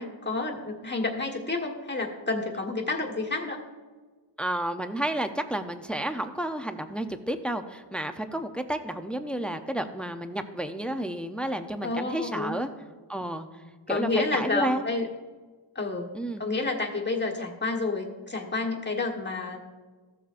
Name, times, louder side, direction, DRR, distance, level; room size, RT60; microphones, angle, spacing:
voice 1, 0.0-3.6 11.8-12.6 13.9-15.1 15.7-16.1 16.4-19.6, left 3 dB, 25° left, 0 dB, 1.4 m, -30 dB
voice 2, 4.4-12.7 13.1-13.5 13.9-14.8 16.1-16.4, right 1 dB, ahead, 8 dB, 0.5 m, -31 dB
15.0 x 7.0 x 2.5 m, 1.4 s
wide cardioid pair, 85°, 45 cm